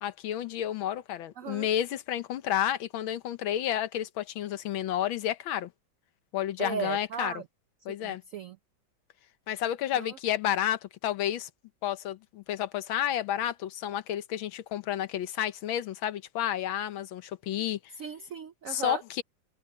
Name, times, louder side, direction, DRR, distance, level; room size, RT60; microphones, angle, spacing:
voice 1, 0.0-5.7 6.3-7.3 7.8-8.2 9.5-11.5 11.8-17.8 18.7-19.2, left 11 dB, 90° left, 1.7 m, -31 dB
voice 2, 1.4-1.7 6.6-7.5 8.0-8.6 10.0-10.2 18.0-19.0, right 7 dB, 80° right, 0.7 m, -36 dB
omnidirectional pair, 2.2 m